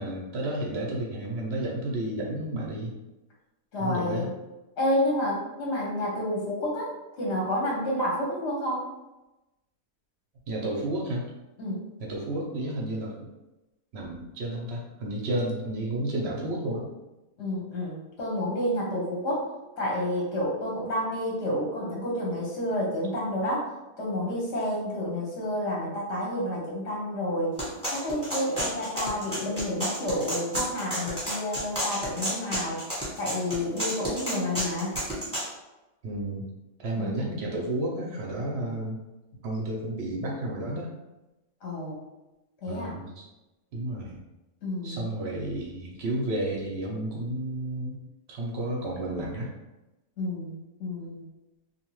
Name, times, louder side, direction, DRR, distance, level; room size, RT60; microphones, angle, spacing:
voice 1, 0.0-2.9 3.8-4.3 10.5-11.3 12.0-13.3 13.9-16.9 36.0-36.4 36.8-39.0 39.4-40.9 42.7-43.3 43.7-44.2 44.8-48.0 48.3-49.5, right 1 dB, 55° right, -3 dB, 0.7 m, -31 dB
voice 2, 3.7-4.3 4.8-8.8 11.6-11.9 17.4-19.5 19.8-23.7 24.0-27.5 27.9-32.8 33.2-34.9 36.9-37.1 41.6-42.0 42.6-42.9 44.6-45.1 50.2-51.2, left 1 dB, 55° left, -4 dB, 0.9 m, -30 dB
sound 1, 27.6-35.5, equal, 5° left, 1.0 m, -31 dB
2.7 x 2.3 x 3.0 m, 1.0 s
omnidirectional pair, 1.7 m